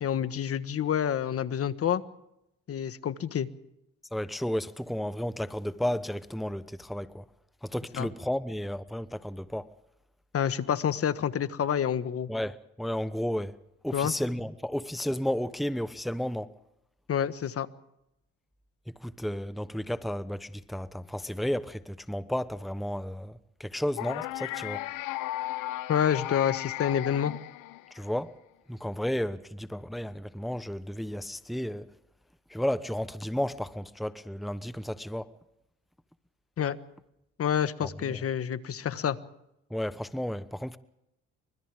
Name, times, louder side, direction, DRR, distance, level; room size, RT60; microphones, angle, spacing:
voice 1, 0.0-2.0 2.7-3.5 7.9-8.1 10.3-12.3 13.9-14.1 17.1-17.7 25.9-27.3 36.6-36.8 37.4-39.2, left 9 dB, 50° left, 1.4 m, -28 dB
voice 2, 4.1-7.2 7.6-9.7 12.3-13.6 13.8-16.5 18.9-24.9 27.9-28.3 28.7-31.9 32.5-35.3 37.8-38.2 39.7-40.8, equal, ahead, 0.9 m, -33 dB
sound 1, 24.0-28.1, left 17 dB, 85° left, 0.9 m, -35 dB
29.5 x 25.5 x 3.6 m
supercardioid pair, 80°, 30 cm